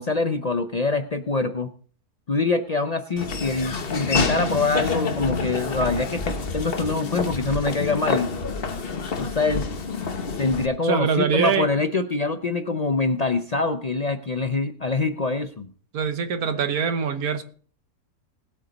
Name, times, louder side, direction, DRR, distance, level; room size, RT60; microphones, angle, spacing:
voice 1, 0.0-1.7 2.3-8.3 9.2-9.7 10.4-15.7, left 3 dB, 60° left, 10 dB, 0.4 m, -24 dB
Laughter / Walk footsteps, 3.2-10.7, left 4 dB, 40° left, 1.2 m, -28 dB
voice 2, 10.8-11.7 15.9-17.4, right 6 dB, 70° right, 10 dB, 1.5 m, -23 dB
19.0 x 8.3 x 4.0 m, 0.44 s
omnidirectional pair, 1.7 m